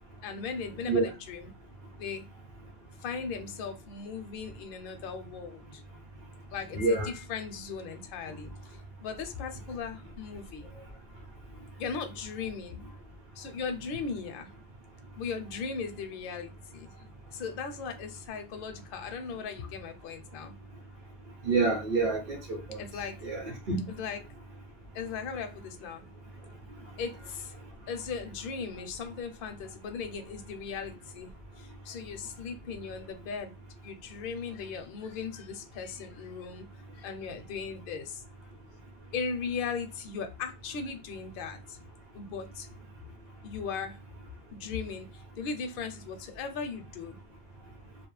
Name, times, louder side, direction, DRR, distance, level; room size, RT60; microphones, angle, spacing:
voice 1, 0.2-1.5 2.0-2.3 3.0-5.8 6.5-10.7 11.8-12.9 13.4-14.5 15.2-20.5 22.8-23.2 23.9-24.4 24.9-26.0 26.8-27.5 27.9-33.5 33.8-36.7 36.9-38.2 39.1-41.8 42.1-42.7 43.4-44.0 44.5-47.2, left 5 dB, 60° left, 6 dB, 0.6 m, -38 dB
voice 2, 6.7-7.1 21.4-22.8 23.2-23.8, right 3 dB, 50° right, -1 dB, 0.9 m, -28 dB
2.3 x 2.0 x 3.0 m, 0.27 s
omnidirectional pair, 1.1 m